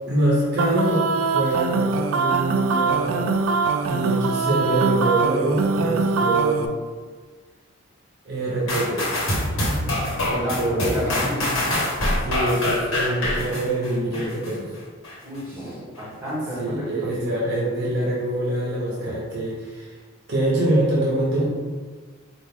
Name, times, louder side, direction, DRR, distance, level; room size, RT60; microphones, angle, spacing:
voice 1, 0.1-3.3 3.9-6.7 8.2-9.1 10.2-11.3 12.2-14.7 16.6-20.0 20.3-21.4, right 1 dB, 55° right, -5 dB, 0.7 m, -24 dB
sound 1, 0.6-6.7, right 4 dB, 80° right, 0.3 m, -23 dB
sound 2, 8.7-14.5 15.0-15.1, left 1 dB, 75° left, 1.2 m, -25 dB
voice 2, 10.3-11.4 15.2-17.3, equal, 10° right, -8 dB, 1.5 m, -31 dB
4.2 x 2.5 x 3.5 m, 1.5 s
head